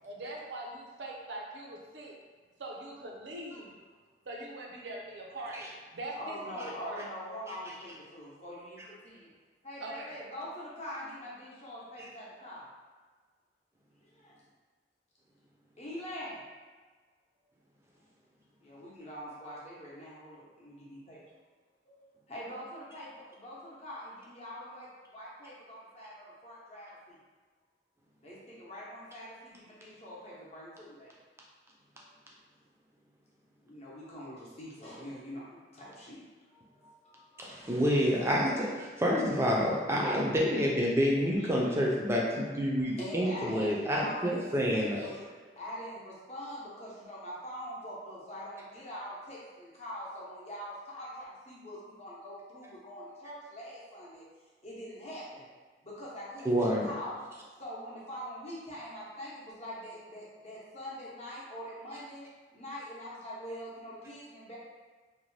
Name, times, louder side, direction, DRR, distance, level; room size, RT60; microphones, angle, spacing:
voice 1, 0.0-2.1 2.6-3.7 4.3-7.1 9.8-10.1, right 1 dB, 85° right, -1 dB, 0.5 m, -42 dB
voice 2, 6.1-9.3 9.6-12.7 14.1-14.4 15.8-16.4 18.6-21.2 21.9-22.0 22.3-27.2 28.2-31.1 32.0-32.2 33.6-38.1 40.2-40.4 41.4-41.5 43.0-45.2 45.6-54.2 54.6-55.5 55.8-57.2 57.6-62.3 62.5-64.6, equal, 35° left, -7 dB, 0.7 m, -44 dB
voice 3, 37.4-38.7 39.0-45.0 56.5-56.9, equal, 15° right, -3 dB, 0.4 m, -28 dB
2.6 x 2.1 x 3.1 m, 1.4 s
head